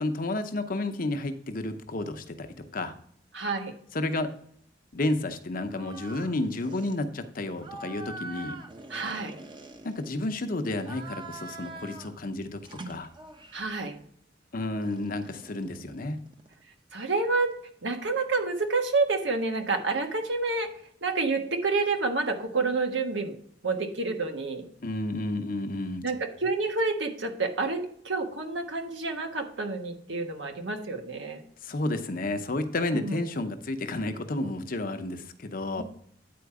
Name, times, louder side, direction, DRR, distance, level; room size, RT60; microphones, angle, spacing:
voice 1, 0.0-2.9 3.9-4.3 4.9-8.6 9.8-13.1 14.5-16.2 24.8-26.0 31.6-35.8, left 2 dB, 50° left, 8 dB, 0.8 m, -31 dB
voice 2, 3.3-3.7 8.9-9.4 13.5-14.0 16.9-17.5 17.8-20.7 21.0-23.4 23.6-24.7 26.0-31.4 32.9-33.2 35.8-35.9, right 3 dB, 80° right, 5 dB, 1.3 m, -29 dB
sound 1, 5.7-6.3 6.6-7.0 7.6-10.4 10.8-12.2 12.6-13.7 14.8-16.6, right 2 dB, 25° right, 0.8 m, -44 dB
9.4 x 4.5 x 4.8 m, 0.63 s
head